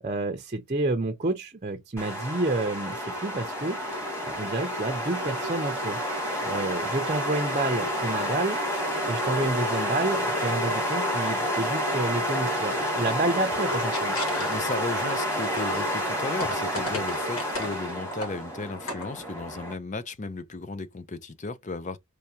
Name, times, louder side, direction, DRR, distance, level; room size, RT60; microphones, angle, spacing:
voice 1, 0.0-6.0 6.4-8.6 9.1-14.2, right 2 dB, 35° right, 0.7 m, -29 dB
sound 1, 2.0-19.7, equal, 10° left, 2.1 m, -29 dB
sound 2, 13.2-14.8 15.2-17.8 18.1-18.3 18.7-19.2, left 1 dB, 75° left, 2.4 m, -36 dB
voice 2, 14.3-22.0, left 3 dB, 35° left, 0.6 m, -35 dB
4.8 x 3.2 x 2.8 m
head